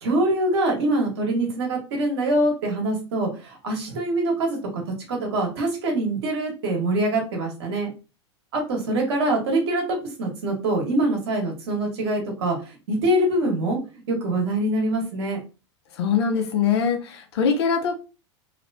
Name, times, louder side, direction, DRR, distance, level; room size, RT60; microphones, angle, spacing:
voice 1, 0.0-4.8 5.1-7.9 8.5-13.8 14.1-15.4, right 1 dB, 60° right, 1.4 m, -24 dB
voice 2, 16.0-18.0, left 6 dB, 60° left, 0.8 m, -22 dB
3.0 x 3.0 x 2.7 m
figure-of-eight pair, 90°, 15 cm